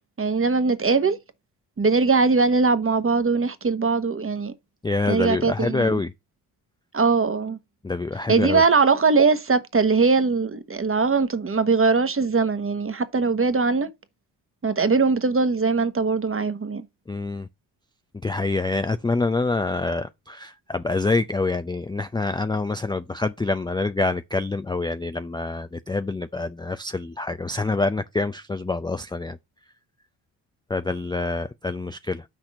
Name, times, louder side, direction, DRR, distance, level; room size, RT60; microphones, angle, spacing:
voice 1, 0.2-1.2 1.8-4.5 5.1-6.0 6.9-7.6 8.3-13.9 14.6-16.8, right 4 dB, 25° right, 1.2 m, -21 dB
voice 2, 4.8-6.1 7.8-8.6 17.1-17.5 18.2-29.4 30.7-32.2, left 3 dB, 10° left, 0.4 m, -26 dB
6.2 x 4.3 x 6.5 m
supercardioid pair, 50°, 49 cm